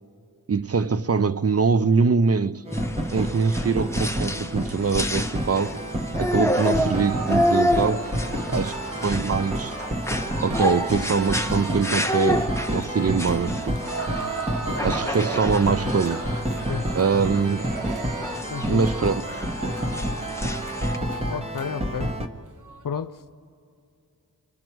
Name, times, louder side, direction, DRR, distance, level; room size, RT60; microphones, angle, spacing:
voice 1, 0.5-2.6 3.1-5.8 6.2-8.1 8.5-9.7 10.4-13.8 14.8-16.2 17.0-17.7 18.7-19.2, right 5 dB, 45° right, 0.5 m, -23 dB
sound 1, 2.7-21.0, left 1 dB, 10° left, 0.9 m, -30 dB
sound 2, 2.7-22.3, equal, 15° right, 1.2 m, -29 dB
sound 3, 6.5-21.7 22.0-22.1 22.4-22.8, right 5 dB, 60° right, 1.1 m, -37 dB
voice 2, 18.5-18.9 21.3-22.1 22.8-23.2, left 7 dB, 65° left, 0.7 m, -31 dB
30.0 x 26.0 x 4.6 m
wide cardioid pair, 60°, 36 cm